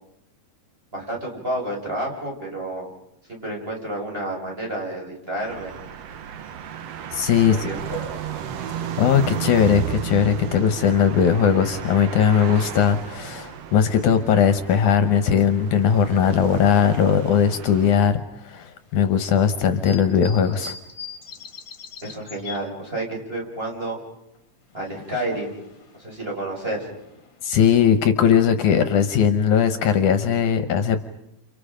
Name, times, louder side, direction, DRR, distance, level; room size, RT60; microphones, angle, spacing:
voice 1, 0.9-2.9 3.3-5.7 7.4-8.1 22.0-24.0 24.7-25.6 26.0-26.9, right 1 dB, 15° right, -1 dB, 6.6 m, -30 dB
sound 1, 5.4-18.0, right 9 dB, 60° right, 2.0 m, -34 dB
voice 2, 7.1-7.7 9.0-18.2 18.4-20.7 27.4-31.1, left 7 dB, 70° left, 10 dB, 2.5 m, -19 dB
sound 2, 18.8-22.6 24.3-28.1, left 4 dB, 35° left, 3.0 m, -43 dB
30.0 x 29.5 x 5.1 m, 0.81 s
omnidirectional pair, 3.7 m